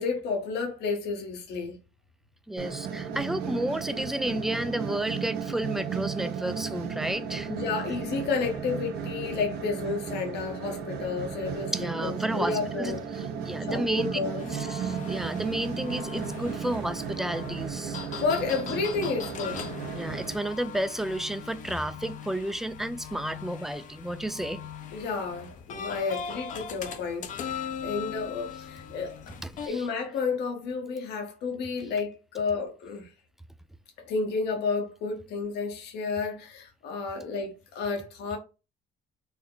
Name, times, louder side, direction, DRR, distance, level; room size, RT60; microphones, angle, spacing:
voice 1, 0.0-1.8 7.5-11.7 12.0-13.1 13.6-14.5 18.2-19.6 24.9-29.2 29.7-33.1 34.0-38.4, left 4 dB, 80° left, 1.0 m, -31 dB
voice 2, 2.5-7.6 11.5-14.2 14.4-18.0 19.9-24.6 29.4-29.8, right 1 dB, ahead, 0.3 m, -32 dB
sound 1, 2.6-20.3, right 7 dB, 75° right, 0.9 m, -35 dB
sound 2, 14.4-29.7, left 7 dB, 50° left, 0.6 m, -40 dB
4.2 x 2.1 x 3.8 m
cardioid pair, 110°, 17 cm